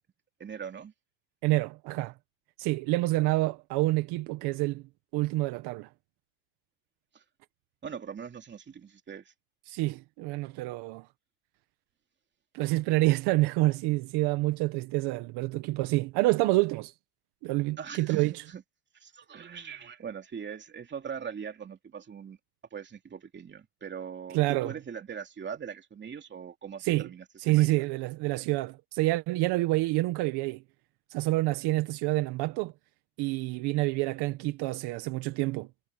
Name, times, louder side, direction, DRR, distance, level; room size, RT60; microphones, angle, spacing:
voice 1, 0.4-0.9 7.1-7.2 7.8-9.3 17.8-18.6 18.9-22.4 22.7-27.7, right 7 dB, 25° right, 2.9 m, -41 dB
voice 2, 1.4-2.1 2.6-4.8 5.1-5.9 9.7-11.1 12.5-16.9 17.4-18.4 24.3-24.7 26.8-27.1 27.4-30.6 31.1-32.7 33.2-35.7, right 19 dB, 65° right, 1.4 m, -27 dB
supercardioid pair, 125°, 43 cm